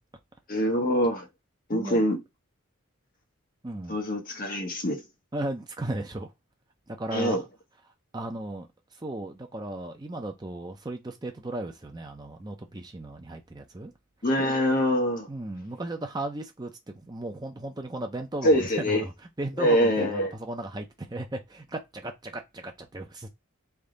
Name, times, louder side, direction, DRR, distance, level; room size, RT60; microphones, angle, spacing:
voice 1, 0.5-1.3 1.7-2.2 3.9-5.0 7.1-7.4 14.2-15.3 18.4-19.0 19.6-20.3, equal, 40° left, 1.0 m, -24 dB
voice 2, 1.7-2.0 3.6-4.0 5.3-6.3 6.9-7.5 8.1-8.7 8.9-13.9 15.3-19.1 19.4-23.3, right 1 dB, 20° right, 0.5 m, -35 dB
3.3 x 2.7 x 3.7 m
head